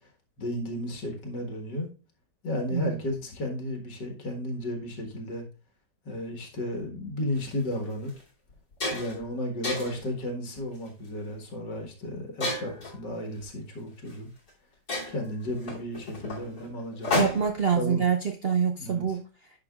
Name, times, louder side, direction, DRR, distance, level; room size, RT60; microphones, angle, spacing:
voice 1, 0.4-1.9 2.4-5.4 6.0-8.1 8.9-14.3 15.1-17.1 17.8-18.1 18.8-19.0, left 1 dB, 75° left, 2.3 m, -33 dB
voice 2, 2.7-3.0 17.1-19.2, right 7 dB, 60° right, 0.6 m, -26 dB
sound 1, 7.4-7.5 8.1-8.2 8.5-9.2 9.6-10.1 10.8-11.1 12.4-12.9 14.1-14.2 14.5-14.6 14.9-17.7, left 2 dB, 55° left, 3.6 m, -31 dB
10.5 x 5.9 x 2.4 m
omnidirectional pair, 1.8 m